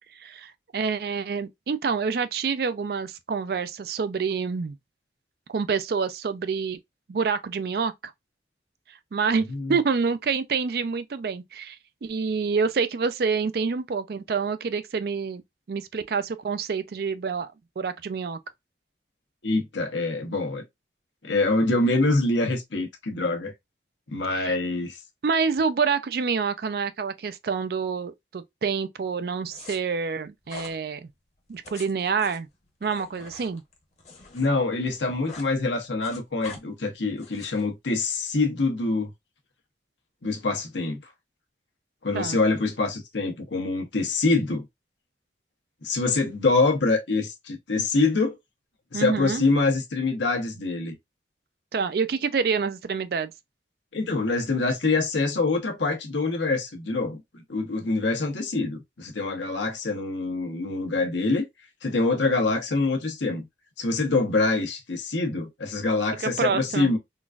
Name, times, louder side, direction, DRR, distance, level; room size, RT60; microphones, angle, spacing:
voice 1, 0.2-4.8 5.5-6.8 7.1-8.1 8.9-15.4 15.7-18.4 24.3-24.6 25.2-31.1 31.5-32.5 32.8-33.6 42.1-42.4 48.9-49.4 51.7-53.3 66.2-66.9, right 5 dB, 55° right, 0.4 m, -27 dB
voice 2, 19.4-20.6 21.2-23.5 24.1-25.0 34.3-39.1 40.2-41.0 42.0-44.7 45.8-48.4 48.9-50.9 53.9-61.5 61.8-63.5 63.8-67.0, left 3 dB, 80° left, 1.0 m, -25 dB
sound 1, 29.5-29.8 30.5-30.8 31.5-34.5 34.8-35.5 35.8-36.6 37.2-37.7, left 3 dB, 35° left, 0.9 m, -44 dB
3.8 x 2.5 x 2.3 m
head